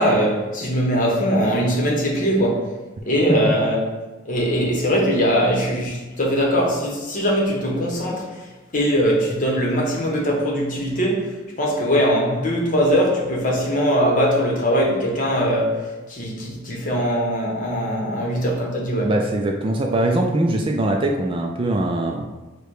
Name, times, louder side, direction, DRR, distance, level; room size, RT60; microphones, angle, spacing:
voice 1, 0.0-2.7 3.1-3.9 4.3-8.4 8.7-19.1, equal, 40° left, 0.9 m, -21 dB
voice 2, 19.0-22.3, right 1 dB, 25° right, 0.3 m, -22 dB
4.9 x 2.2 x 4.6 m
head